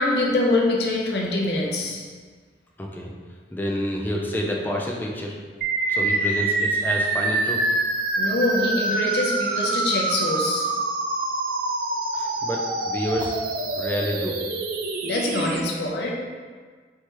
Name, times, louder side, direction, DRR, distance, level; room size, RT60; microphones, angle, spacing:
voice 1, 0.0-2.0 8.2-10.7 15.0-16.2, left 2 dB, 65° left, -2 dB, 0.7 m, -24 dB
voice 2, 2.8-3.1 3.5-5.3 5.9-7.6 12.1-13.3 13.7-14.4, equal, 10° left, -1 dB, 0.4 m, -28 dB
sound 1, 5.6-15.6, right 3 dB, 50° right, 0.4 m, -26 dB
4.6 x 3.4 x 3.0 m, 1.5 s
head